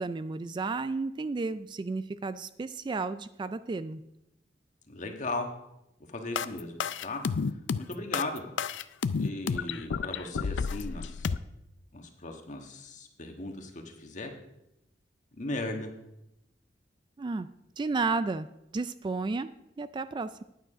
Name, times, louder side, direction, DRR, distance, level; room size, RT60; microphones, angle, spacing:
voice 1, 0.0-4.0 17.2-17.5 17.8-18.5 18.7-19.5 19.8-20.4, right 3 dB, 25° right, 13 dB, 0.3 m, -32 dB
voice 2, 4.9-5.5 6.1-7.2 7.8-8.4 9.2-11.3 11.9-14.3 15.4-15.9, left 2 dB, 45° left, 3 dB, 1.5 m, -37 dB
sound 1, 6.4-11.4, left 5 dB, 80° left, 0.4 m, -30 dB
10.0 x 9.1 x 5.0 m, 0.86 s
head